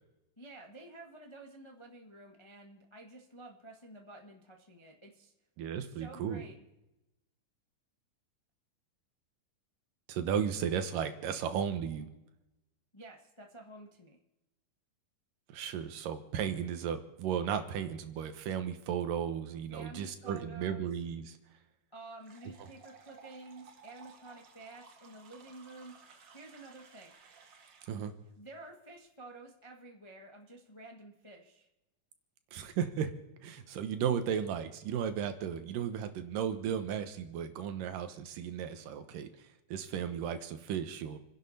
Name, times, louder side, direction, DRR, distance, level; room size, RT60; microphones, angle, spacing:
voice 1, 0.4-5.3 5.8-6.6 12.9-14.2 19.7-20.9 21.9-25.9 26.3-27.1 28.4-31.7, right 2 dB, 45° left, 1 dB, 0.3 m, -51 dB
voice 2, 5.6-6.5 10.1-12.1 15.5-21.3 27.9-28.1 32.5-33.1 33.4-41.2, right 8 dB, 80° right, 8 dB, 2.8 m, -35 dB
sound 1, 22.2-28.1, right 5 dB, 50° right, 1.4 m, -57 dB
29.0 x 10.5 x 4.2 m, 0.97 s
omnidirectional pair, 3.8 m